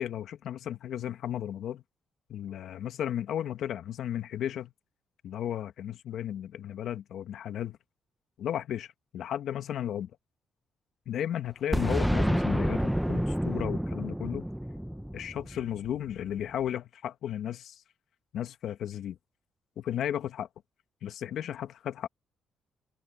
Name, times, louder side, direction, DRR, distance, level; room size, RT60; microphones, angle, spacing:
voice 1, 0.0-1.8 2.3-4.7 5.2-7.8 8.4-10.1 11.0-14.5 15.1-17.8 18.3-19.2 19.8-20.5 21.0-22.1, left 10 dB, 70° left, 1.7 m, -34 dB
Boom, 11.7-16.4, equal, ahead, 0.9 m, -29 dB
open air
cardioid pair, 90°, 0 cm